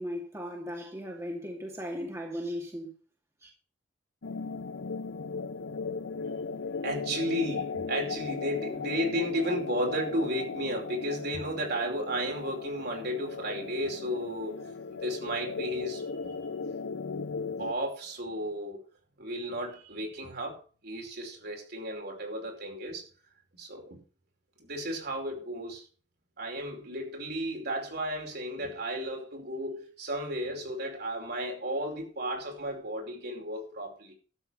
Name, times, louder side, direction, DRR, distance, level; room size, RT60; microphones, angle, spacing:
voice 1, 0.0-2.9 3.4-3.5, equal, 15° right, 2.5 m, -37 dB
sound 1, 4.2-17.7, left 5 dB, 80° left, 0.7 m, -37 dB
voice 2, 6.8-16.4 17.6-18.8 19.2-23.0 23.5-24.0 24.6-25.8 26.4-34.1, equal, 60° right, 5.1 m, -34 dB
12.5 x 8.0 x 6.3 m
head